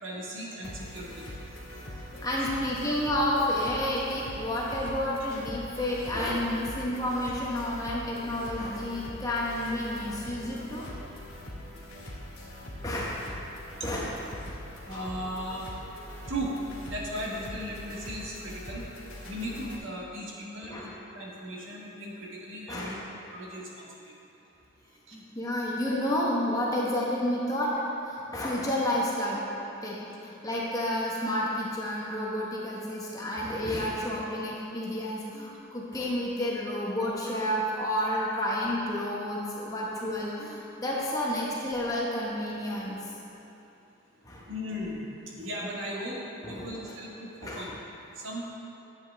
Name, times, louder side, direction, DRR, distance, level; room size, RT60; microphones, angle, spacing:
voice 1, 0.0-1.3 14.8-15.7 16.3-16.5 16.8-18.8 19.2-24.1 25.1-25.2 44.5-45.1 45.4-46.1 46.5-47.7 48.1-48.5, equal, 65° right, -4 dB, 1.6 m, -37 dB
sound 1, 0.6-19.8, left 1 dB, 80° left, 1.8 m, -42 dB
voice 2, 2.0-10.9 12.8-13.3 13.8-14.2 20.7-20.9 22.7-23.0 25.1-27.7 28.0-29.4 29.8-43.0 44.2-44.4 46.4-46.9 47.4-47.7, left 1 dB, 15° left, -5 dB, 1.1 m, -30 dB
10.0 x 7.9 x 3.5 m, 2.8 s
head